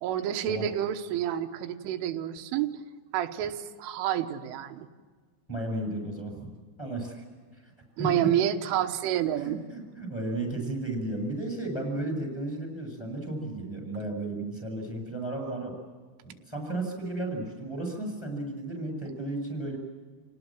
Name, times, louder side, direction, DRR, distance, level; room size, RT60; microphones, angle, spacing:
voice 1, 0.0-2.7 3.1-4.9 8.0-9.6, right 11 dB, 90° right, 6 dB, 3.7 m, -29 dB
voice 2, 5.5-6.5 6.8-7.2 7.5-7.7 8.0-8.3 9.4-15.7 16.2-19.8, right 2 dB, 5° left, 3 dB, 6.4 m, -34 dB
30.0 x 19.0 x 7.7 m, 1.5 s
omnidirectional pair, 5.6 m